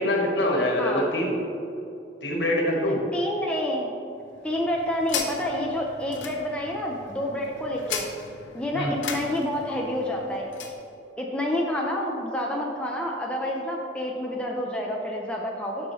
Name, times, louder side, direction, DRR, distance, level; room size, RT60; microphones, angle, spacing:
voice 1, 0.0-1.3 2.2-3.0 8.7-8.9, left 1 dB, 65° left, -1 dB, 1.4 m, -24 dB
voice 2, 3.1-3.9 4.4-8.0 8.5-10.5 11.2-15.9, left 1 dB, 5° left, -2 dB, 0.6 m, -28 dB
sound 1, 4.2-10.8, left 5 dB, 80° left, 0.8 m, -37 dB
12.0 x 5.4 x 3.1 m, 2.7 s
head